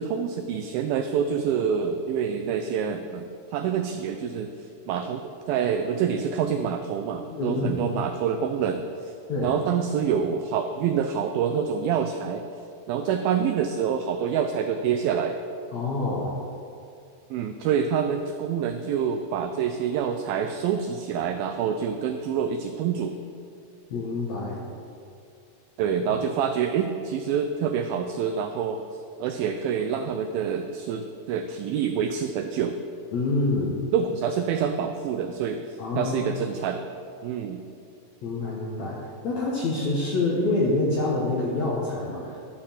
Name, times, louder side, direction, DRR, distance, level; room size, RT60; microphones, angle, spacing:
voice 1, 0.0-9.1 9.4-12.4 12.9-15.4 17.3-23.2 25.8-28.8 29.2-32.8 33.9-36.8 37.2-37.6, right 7 dB, 90° right, 7 dB, 2.0 m, -27 dB
voice 2, 7.3-7.8 9.3-9.5 15.7-16.3 23.9-24.6 33.1-33.7 35.8-36.2 38.2-42.4, left 2 dB, 75° left, -4 dB, 1.7 m, -26 dB
12.5 x 4.4 x 7.4 m, 2.5 s
omnidirectional pair, 4.7 m